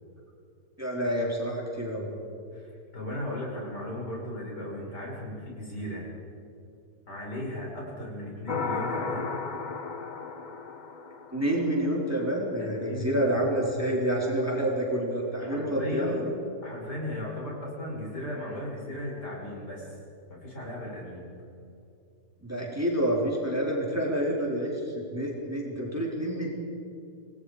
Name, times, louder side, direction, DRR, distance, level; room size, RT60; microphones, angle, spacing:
voice 1, 0.8-2.1 11.3-16.3 22.4-26.5, right 1 dB, 10° right, -3 dB, 3.8 m, -28 dB
voice 2, 2.5-6.1 7.1-9.3 12.6-13.2 15.4-16.2 16.6-20.0 20.3-21.3, left 1 dB, 70° left, -3 dB, 6.3 m, -36 dB
sound 1, 8.5-11.9, left 4 dB, 35° left, 0.9 m, -34 dB
28.0 x 20.0 x 5.0 m, 2.7 s
omnidirectional pair, 1.8 m